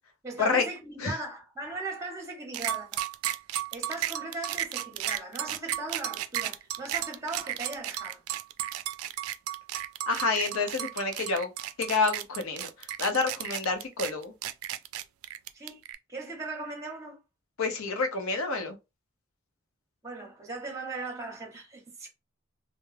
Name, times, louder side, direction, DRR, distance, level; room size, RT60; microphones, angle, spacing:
voice 1, 0.2-3.0 3.7-8.2 15.5-15.8 16.1-17.2 20.0-22.1, right 2 dB, 15° right, 0.8 m, -38 dB
sound 1, 2.5-16.0, right 12 dB, 85° right, 0.3 m, -33 dB
voice 2, 10.1-11.5 11.8-14.3 17.6-18.8, left 4 dB, 85° left, 0.7 m, -28 dB
2.3 x 2.0 x 3.2 m
head